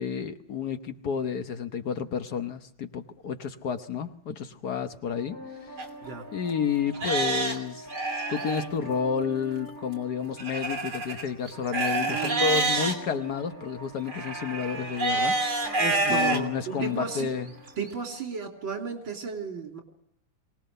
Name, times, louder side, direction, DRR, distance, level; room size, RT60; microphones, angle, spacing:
voice 1, 0.0-5.8 6.3-7.9 8.3-15.4 16.0-17.5, left 6 dB, 60° left, 1.5 m, -31 dB
sound 1, 5.1-18.1, right 1 dB, 10° right, 6.9 m, -44 dB
Livestock farm animals working animals, 5.8-5.9 6.5-6.6 6.9-8.7 10.4-12.9 14.1-16.4 17.0-17.1 17.7-17.8, right 2 dB, 55° right, 3.4 m, -28 dB
voice 2, 12.0-12.5 15.8-17.3 17.8-19.8, right 4 dB, 80° right, 3.8 m, -34 dB
23.5 x 18.5 x 6.6 m
omnidirectional pair, 2.1 m